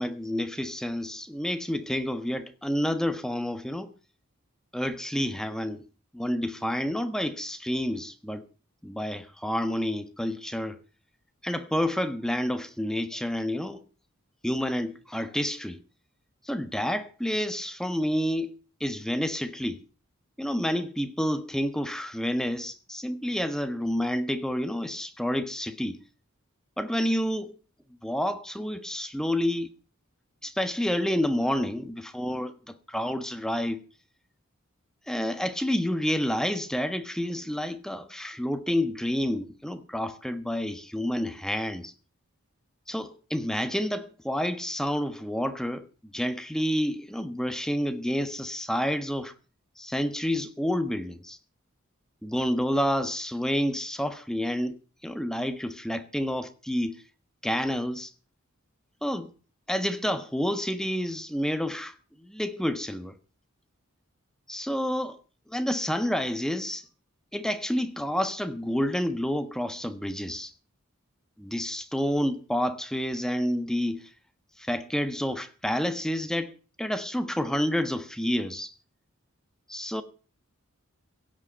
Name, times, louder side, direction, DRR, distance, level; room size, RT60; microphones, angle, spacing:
voice 1, 0.0-3.9 4.7-5.8 6.1-8.4 8.8-10.8 11.4-13.8 14.4-15.8 16.4-18.5 18.8-19.8 20.4-26.0 26.8-27.5 28.0-29.7 30.4-33.8 35.1-41.9 42.9-45.8 46.1-49.3 49.8-51.4 52.2-54.8 55.0-57.0 57.4-58.1 59.0-59.3 59.7-61.9 62.2-63.2 64.5-65.2 65.5-66.8 67.3-70.5 71.4-74.0 74.6-76.5 76.8-78.7 79.7-80.0, equal, 5° left, 1.3 m, -29 dB
16.5 x 8.3 x 8.9 m
head